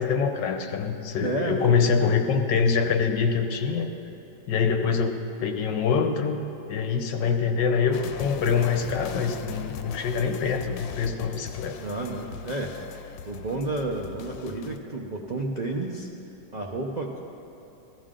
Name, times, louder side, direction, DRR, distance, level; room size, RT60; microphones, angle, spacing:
voice 1, 0.0-3.9 4.5-6.4 6.7-11.8, left 6 dB, 70° left, 5 dB, 1.5 m, -25 dB
voice 2, 1.2-2.1 11.8-12.8 13.3-16.1 16.5-17.2, right 2 dB, 65° right, -1 dB, 0.4 m, -31 dB
sound 1, 7.9-14.8, left 8 dB, 90° left, 1.3 m, -39 dB
15.5 x 13.5 x 3.7 m, 3.0 s
omnidirectional pair, 2.0 m